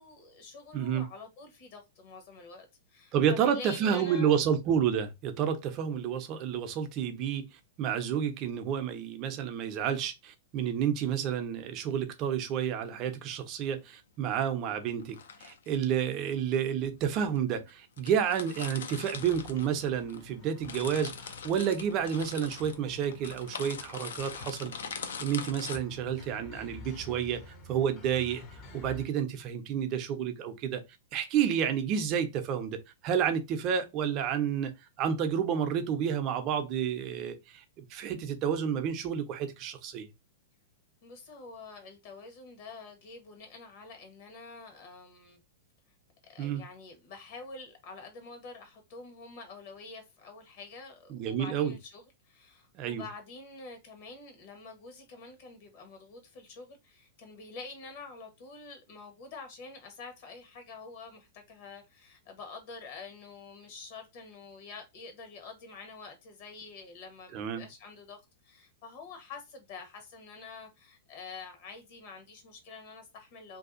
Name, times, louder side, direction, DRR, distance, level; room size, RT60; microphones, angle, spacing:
voice 1, 0.0-4.4 41.0-45.4 46.3-68.2 68.4-73.6, left 4 dB, 55° left, 1.0 m, -47 dB
voice 2, 0.7-1.1 3.1-7.5 7.8-27.4 27.7-28.4 28.7-30.8 31.1-40.1 46.4-46.6 51.1-51.8 52.7-53.0 67.3-67.6, right 8 dB, 40° right, 0.5 m, -30 dB
sound 1, 12.9-13.2 15.0-15.7 16.5-16.6 17.4-17.5 17.7-17.8 18.0-20.2 20.5-25.8, left 6 dB, 70° left, 0.4 m, -42 dB
sound 2, 19.1-29.1, left 2 dB, 35° left, 0.7 m, -50 dB
2.6 x 2.3 x 2.5 m
figure-of-eight pair, 100°, 0 cm